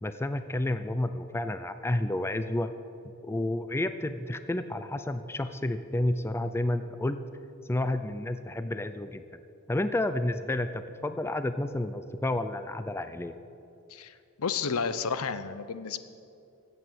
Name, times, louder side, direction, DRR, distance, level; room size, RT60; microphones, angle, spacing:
voice 1, 0.0-2.7 3.2-7.2 7.7-9.4 9.7-13.4, left 1 dB, 10° left, 11 dB, 0.4 m, -30 dB
voice 2, 13.9-16.0, left 5 dB, 70° left, 13 dB, 0.7 m, -32 dB
14.5 x 8.4 x 7.6 m, 2.7 s
head